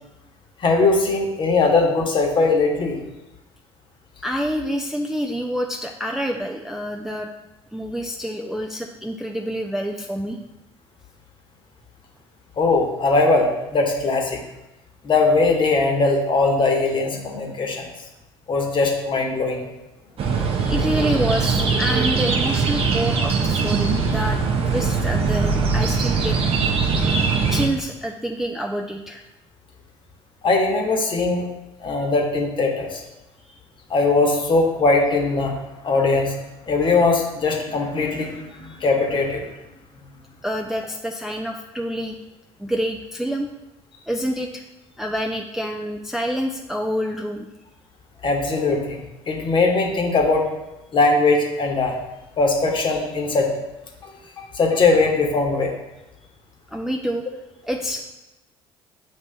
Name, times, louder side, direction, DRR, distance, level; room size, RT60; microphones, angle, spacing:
voice 1, 0.6-3.0 12.6-14.4 15.0-17.9 18.5-19.7 30.4-31.5 31.8-33.0 33.9-35.5 35.8-36.3 36.7-39.5 48.2-50.5 50.9-52.0 52.4-53.5 54.5-55.7, left 3 dB, 35° left, 1 dB, 1.1 m, -20 dB
voice 2, 4.2-7.3 7.7-10.4 20.6-24.4 24.7-26.4 27.5-29.2 33.5-33.6 38.7-38.8 40.4-42.2 42.6-43.5 44.1-44.6 45.0-47.5 56.7-57.2 57.6-58.1, equal, 5° right, 2 dB, 0.3 m, -27 dB
sound 1, 20.2-27.7, right 4 dB, 45° right, 0.7 m, -21 dB
8.0 x 2.9 x 2.2 m, 0.98 s
hypercardioid pair, 60°, 14 cm